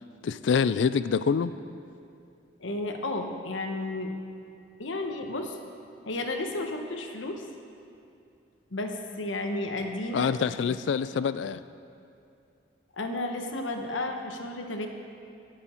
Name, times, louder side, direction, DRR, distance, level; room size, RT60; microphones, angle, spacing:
voice 1, 0.2-1.5 10.1-11.6, left 6 dB, 70° left, 14 dB, 0.3 m, -26 dB
voice 2, 2.6-4.1 4.8-5.6 6.1-7.4 8.7-10.3 10.6-10.7 12.9-14.9, left 2 dB, 90° left, 4 dB, 1.1 m, -32 dB
18.0 x 7.0 x 4.4 m, 2.5 s
head